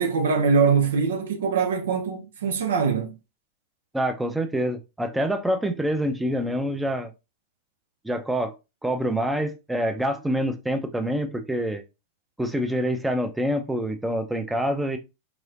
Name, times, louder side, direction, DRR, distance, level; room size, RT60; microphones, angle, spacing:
voice 1, 0.0-3.1, right 5 dB, 60° right, 0.6 m, -23 dB
voice 2, 3.9-7.1 8.0-8.5 8.8-11.8 12.4-15.0, equal, 5° right, 0.6 m, -26 dB
4.8 x 3.1 x 2.5 m
figure-of-eight pair, 90°, 0 cm